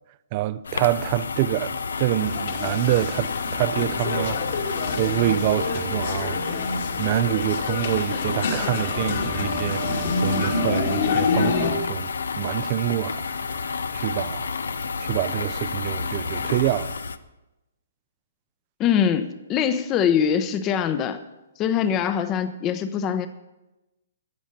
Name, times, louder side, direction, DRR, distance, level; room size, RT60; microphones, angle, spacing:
voice 1, 0.3-4.7 5.0-6.4 7.0-12.1 12.4-13.4 13.9-14.5 15.0-17.0, right 14 dB, 40° right, 0.5 m, -26 dB
sound 1, 0.7-17.2, left 5 dB, 80° left, 0.7 m, -30 dB
sound 2, 2.2-11.7, left 4 dB, 60° left, 2.3 m, -27 dB
voice 2, 18.8-21.2 21.6-23.3, left 8 dB, 25° left, 0.8 m, -23 dB
13.0 x 8.5 x 6.8 m
hypercardioid pair, 135°, 0 cm